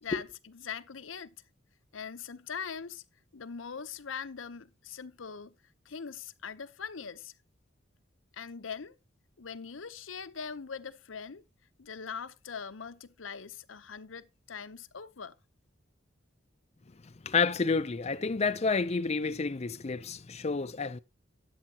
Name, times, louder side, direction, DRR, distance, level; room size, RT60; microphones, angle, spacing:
voice 1, 0.0-1.3 1.9-3.0 3.3-5.5 5.8-7.3 8.3-9.0 9.4-11.4 11.8-15.4, left 6 dB, 90° left, 0.8 m, -41 dB
voice 2, 17.2-21.0, left 4 dB, 35° left, 0.5 m, -29 dB
13.0 x 9.5 x 2.9 m
head